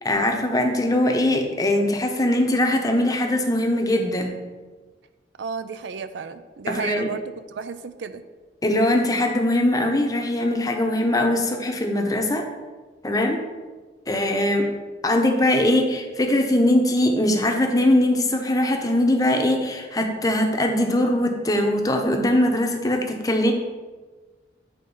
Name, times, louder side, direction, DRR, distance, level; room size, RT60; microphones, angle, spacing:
voice 1, 0.0-4.4 6.7-7.1 8.6-12.5 13.0-13.4 14.1-14.7 15.0-23.5, left 1 dB, 20° left, 3 dB, 0.7 m, -21 dB
voice 2, 5.4-8.2, right 5 dB, 85° right, 11 dB, 0.5 m, -33 dB
8.7 x 3.8 x 5.3 m, 1.3 s
head